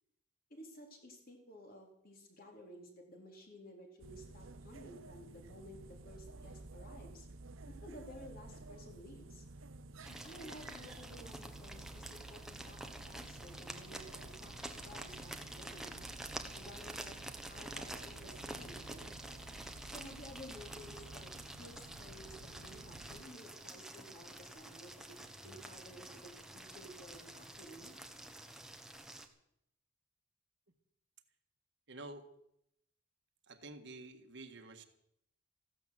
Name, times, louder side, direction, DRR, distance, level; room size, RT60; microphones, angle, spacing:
voice 1, 0.5-7.3 7.7-9.4 10.1-14.1 14.4-16.0 16.5-19.1 19.9-27.9, equal, 45° left, 2 dB, 3.7 m, -54 dB
sound 1, 4.0-23.2, right 2 dB, 75° right, 0.9 m, -52 dB
sound 2, 10.0-29.3, right 1 dB, 5° right, 1.2 m, -48 dB
voice 2, 31.9-32.3 33.5-34.8, right 2 dB, 60° right, 7 dB, 1.6 m, -49 dB
15.0 x 12.5 x 7.7 m, 0.75 s
head